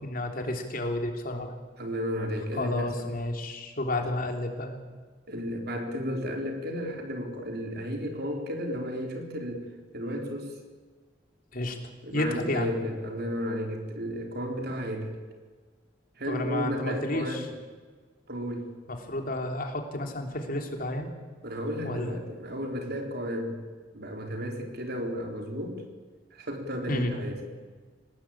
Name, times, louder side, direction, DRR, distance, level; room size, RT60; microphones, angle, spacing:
voice 1, 0.0-1.6 2.5-4.8 11.5-11.8 12.1-12.7 16.3-17.4 18.9-21.1 21.8-22.2 26.9-27.1, left 1 dB, 50° left, 3 dB, 3.4 m, -31 dB
voice 2, 1.8-3.1 5.3-9.6 9.9-10.5 12.0-15.2 16.2-17.5 18.3-18.7 21.4-23.6 23.9-25.8 26.3-27.4, equal, 60° right, 3 dB, 4.1 m, -33 dB
25.0 x 19.0 x 8.8 m, 1.4 s
head